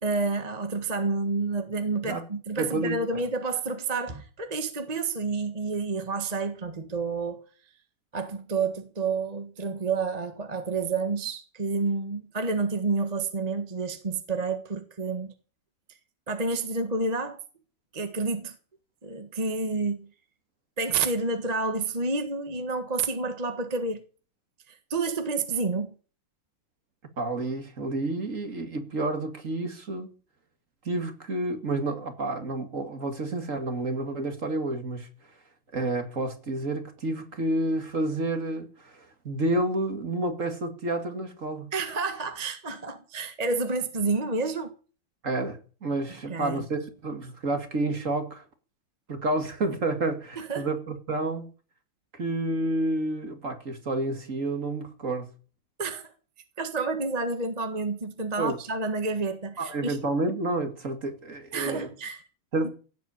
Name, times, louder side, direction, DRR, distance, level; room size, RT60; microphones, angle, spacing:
voice 1, 0.0-7.5 8.1-15.3 16.3-17.4 17.9-18.5 19.0-20.1 20.8-24.0 24.7-25.9 41.7-44.7 46.3-46.7 50.4-50.7 55.8-56.1 56.6-60.0 61.5-62.2 62.6-62.7, right 3 dB, 20° right, 1.3 m, -29 dB
voice 2, 2.6-3.2 27.2-30.1 30.8-35.1 35.7-41.7 45.2-48.4 49.1-51.5 52.1-55.3 58.4-58.6 59.6-61.9 62.5-62.7, right 2 dB, 35° right, 2.3 m, -30 dB
16.5 x 8.2 x 8.8 m
omnidirectional pair, 2.4 m